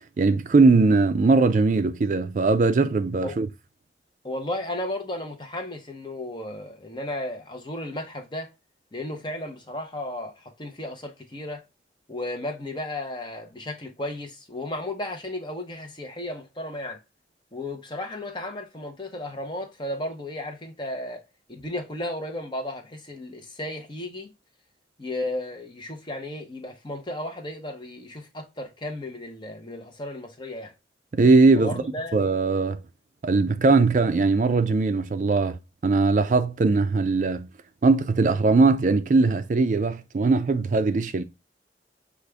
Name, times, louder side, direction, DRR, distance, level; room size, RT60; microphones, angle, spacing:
voice 1, 0.2-3.5 31.1-31.7 32.1-32.8 33.2-37.5 37.8-41.2, right 3 dB, 45° right, 0.4 m, -20 dB
voice 2, 4.2-8.5 8.9-11.6 12.1-17.0 17.5-24.3 25.0-30.7 31.6-32.2, left 1 dB, 25° left, 0.8 m, -34 dB
6.3 x 2.4 x 3.4 m
head